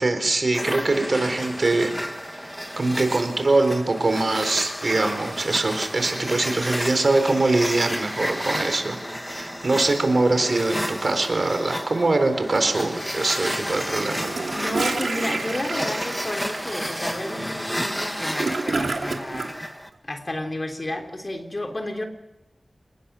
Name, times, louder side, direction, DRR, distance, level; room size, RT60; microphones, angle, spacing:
voice 1, 0.0-1.9 2.3-9.0 9.3-14.4, right 2 dB, 60° right, 7 dB, 4.3 m, -23 dB
sound 1, 0.5-19.9, equal, ahead, 1.8 m, -31 dB
Gurgling / Toilet flush, 14.1-19.5, right 3 dB, 90° right, 2.8 m, -29 dB
voice 2, 14.6-19.6 20.0-22.0, left 1 dB, 35° left, 4 dB, 3.7 m, -31 dB
29.5 x 19.5 x 6.4 m, 0.92 s
wide cardioid pair, 65°, 0 cm